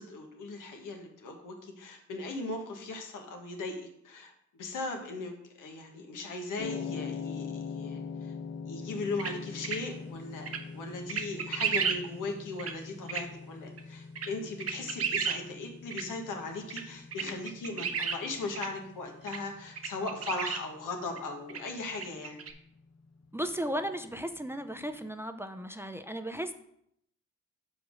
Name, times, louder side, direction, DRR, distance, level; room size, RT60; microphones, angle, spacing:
voice 1, 0.0-8.3 8.6-22.4, left 3 dB, 90° left, 3 dB, 1.4 m, -38 dB
sound 1, 6.6-24.8, left 5 dB, 55° left, 0.7 m, -44 dB
sound 2, 9.2-9.3 9.6-9.8 10.5-10.6 11.1-12.0 12.6-12.7 13.1-13.2 13.8-13.9 14.1-14.3 14.6-15.4 15.9-16.0 16.7-16.8 17.1-18.2 18.5-18.7 19.3-19.4 19.8-20.6 21.2-21.3 21.5-21.6 21.9-22.5, right 6 dB, 50° right, 0.9 m, -32 dB
voice 2, 23.3-26.5, equal, 10° right, 8 dB, 0.5 m, -35 dB
5.3 x 4.7 x 6.3 m, 0.72 s
cardioid pair, 85°, 31 cm